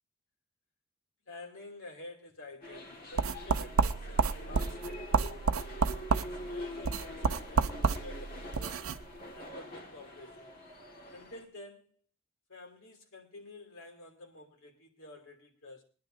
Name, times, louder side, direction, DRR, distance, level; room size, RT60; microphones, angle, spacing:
voice 1, 1.3-5.4 6.1-9.0 9.3-10.5 11.1-11.9 12.5-15.8, left 2 dB, 70° left, 2.9 m, -50 dB
sound 1, 2.6-11.4, left 1 dB, 40° left, 1.8 m, -45 dB
sound 2, 3.2-9.0, right 5 dB, 75° right, 0.6 m, -30 dB
23.0 x 10.5 x 2.7 m
head